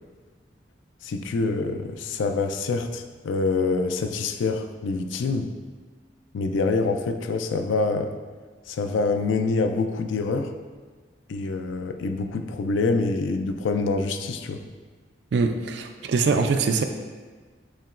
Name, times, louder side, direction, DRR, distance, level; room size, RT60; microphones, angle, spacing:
voice 1, 1.0-5.5 6.3-8.1 8.7-10.5 11.3-14.6, left 3 dB, 85° left, 7 dB, 0.3 m, -26 dB
voice 2, 15.3-16.8, right 4 dB, 70° right, 7 dB, 0.3 m, -23 dB
7.1 x 2.9 x 2.4 m, 1.4 s
head